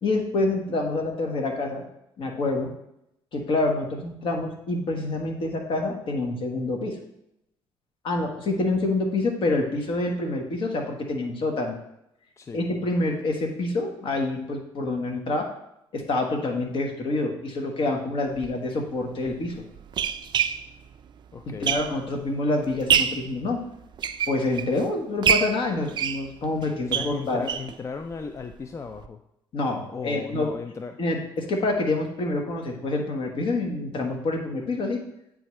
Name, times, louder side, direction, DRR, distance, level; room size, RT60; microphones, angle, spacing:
voice 1, 0.0-1.8 2.2-2.7 3.3-7.0 8.0-11.8 12.5-15.5 15.9-19.5 21.6-23.6 24.3-27.5 29.5-30.5 31.0-35.0, left 2 dB, 55° left, 2 dB, 1.2 m, -27 dB
sound 1, 18.3-18.5 19.3-22.2 22.6-23.3 23.8-24.8 25.2-27.8 28.1-28.2 28.5-28.6 29.0-29.1, right 8 dB, 45° right, 0.4 m, -26 dB
voice 2, 21.3-21.8 26.9-29.2 29.9-31.0, left 5 dB, 30° left, 7 dB, 0.4 m, -36 dB
8.7 x 3.6 x 3.1 m, 0.81 s
supercardioid pair, 80°, 11 cm